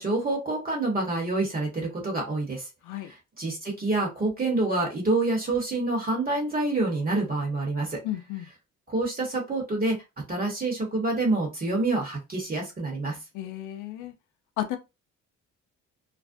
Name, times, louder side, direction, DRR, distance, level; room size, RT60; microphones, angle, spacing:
voice 1, 0.0-2.7 3.0-8.0 8.9-10.0 10.3-13.2, right 2 dB, 30° right, 1.0 m, -27 dB
voice 2, 8.0-8.5 13.3-14.1 14.6-14.8, left 13 dB, 90° left, 0.5 m, -33 dB
2.4 x 2.0 x 2.5 m
cardioid pair, 90°, 30 cm